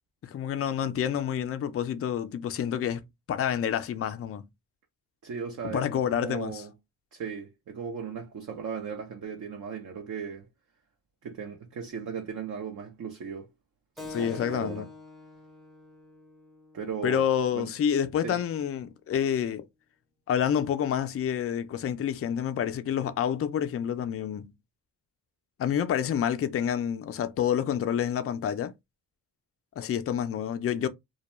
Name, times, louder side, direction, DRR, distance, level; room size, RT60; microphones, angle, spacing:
voice 1, 0.2-3.0 3.3-4.5 5.6-6.6 14.1-14.9 17.0-19.7 20.3-24.5 25.6-28.7 29.8-30.9, left 9 dB, 40° left, 0.4 m, -28 dB
voice 2, 5.2-6.7 7.1-10.5 11.2-13.5 14.2-14.8 16.7-17.2 17.6-17.7 18.2-18.4, right 6 dB, 50° right, 0.7 m, -37 dB
Keyboard (musical), 14.0-19.1, left 2 dB, ahead, 0.6 m, -47 dB
2.2 x 2.1 x 2.9 m
supercardioid pair, 55°, 38 cm